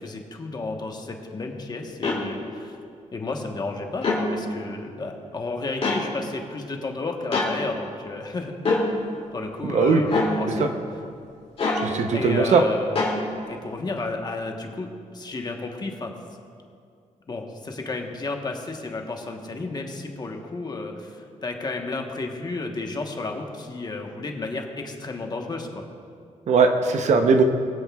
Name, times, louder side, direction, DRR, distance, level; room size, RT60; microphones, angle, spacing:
voice 1, 0.0-2.8 3.1-8.5 9.3-10.1 10.4-10.7 12.1-13.1 13.5-16.1 17.3-25.8, left 3 dB, 30° left, 2 dB, 1.1 m, -32 dB
sound 1, 2.0-2.2 4.0-4.2 5.8-6.0 7.3-7.5 8.6-8.9 10.1-10.3 11.6-11.8 13.0-13.2, left 3 dB, 50° left, 2.5 m, -23 dB
voice 2, 9.6-10.0 10.6-10.7 11.8-12.6 26.5-27.4, right 4 dB, 65° right, 6 dB, 0.8 m, -19 dB
20.5 x 7.9 x 2.4 m, 2.4 s
cardioid pair, 110°, 13 cm